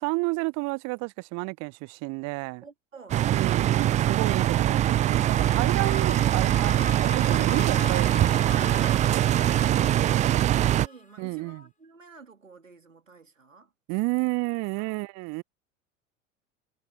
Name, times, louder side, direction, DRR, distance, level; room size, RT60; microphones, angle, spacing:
voice 1, 0.0-2.6 3.3-9.2 11.2-11.6 13.9-15.4, right 27 dB, 45° right, 0.9 m, -31 dB
voice 2, 2.6-4.0 9.1-13.7 14.8-15.0, right 4 dB, 85° right, 2.6 m, -50 dB
sound 1, 3.1-10.9, right 12 dB, 20° right, 0.4 m, -23 dB
sound 2, 4.2-11.2, left 4 dB, 20° left, 2.9 m, -41 dB
figure-of-eight pair, 70°, 38 cm